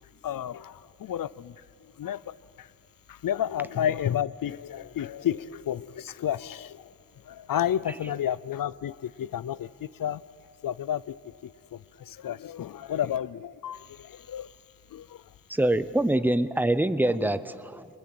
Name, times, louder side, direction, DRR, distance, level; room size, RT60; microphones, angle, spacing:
voice 1, 0.2-1.6 2.0-2.7 3.1-6.9 7.2-10.2 10.6-11.2 11.4-14.5 14.9-15.2 17.2-17.3, left 10 dB, 80° left, 0.6 m, -31 dB
voice 2, 15.5-17.9, right 1 dB, 5° right, 0.8 m, -25 dB
29.0 x 22.5 x 7.8 m
wide cardioid pair, 125°, 33 cm